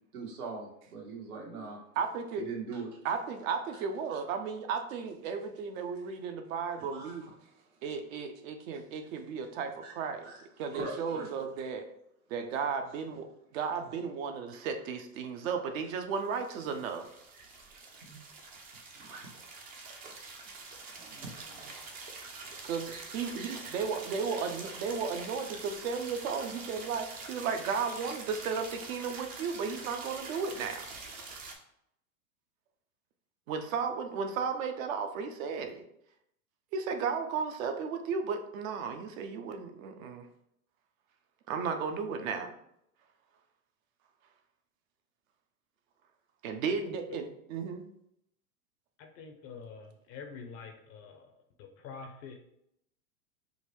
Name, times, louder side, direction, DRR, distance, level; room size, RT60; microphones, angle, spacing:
voice 1, 0.1-1.8 2.4-2.9 6.8-7.3 9.8-9.9 10.2-10.4 10.7-11.3 17.3-17.4 18.0-18.2 18.9-19.3 20.0-20.1 20.8-23.7, right 4 dB, 80° right, -2 dB, 1.2 m, -43 dB
voice 2, 2.0-2.5 3.0-7.3 7.8-10.3 10.6-11.9 12.3-13.3 13.5-17.1 22.6-30.9 33.5-35.8 36.7-40.3 41.5-42.5 46.4-47.8, right 5 dB, 65° right, 6 dB, 0.6 m, -34 dB
sound 1, 16.1-31.5, right 3 dB, 20° right, 0.4 m, -45 dB
voice 3, 46.8-47.2 49.0-51.3 51.6-52.4, left 5 dB, 35° left, 4 dB, 0.5 m, -46 dB
3.8 x 2.1 x 3.0 m, 0.76 s
hypercardioid pair, 110°, 44 cm